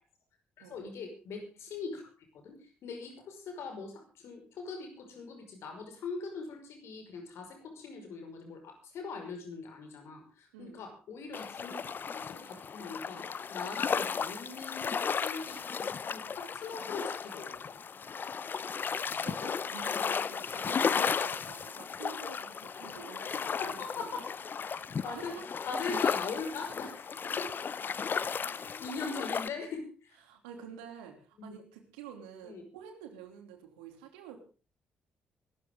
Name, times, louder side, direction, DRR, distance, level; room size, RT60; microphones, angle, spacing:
voice 1, 0.6-2.0 2.3-11.8 12.1-17.8 23.3-24.2 24.6-27.9 28.3-30.2 31.4-31.5 32.4-32.6, left 4 dB, 65° left, 5 dB, 5.5 m, -42 dB
sound 1, 11.3-29.5, left 6 dB, 45° left, 0.8 m, -35 dB
voice 2, 18.5-23.6 24.0-24.2 25.0-25.5 30.2-34.4, right 8 dB, 80° right, 5 dB, 3.1 m, -49 dB
23.5 x 13.5 x 3.8 m, 0.35 s
hypercardioid pair, 45°, 5 cm